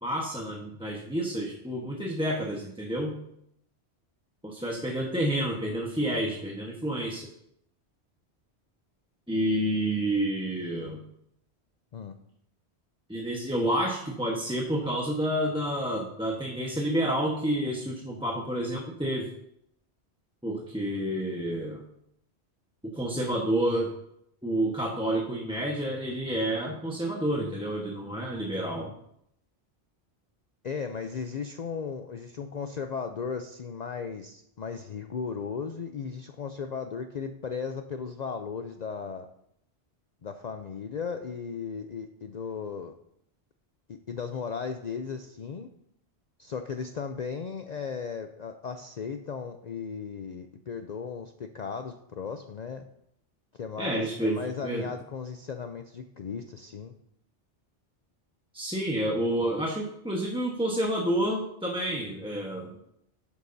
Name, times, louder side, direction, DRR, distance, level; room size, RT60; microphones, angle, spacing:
voice 1, 0.0-3.1 4.4-7.3 9.3-11.0 13.1-19.3 20.4-21.8 22.9-23.9 24.4-28.9 53.8-54.8 58.5-62.7, right 1 dB, 5° right, -2 dB, 1.1 m, -29 dB
voice 2, 30.6-39.3 40.2-42.9 43.9-45.7 46.4-52.8 53.5-56.9, left 6 dB, 50° left, 6 dB, 0.6 m, -36 dB
12.5 x 9.5 x 2.7 m, 0.75 s
omnidirectional pair, 1.1 m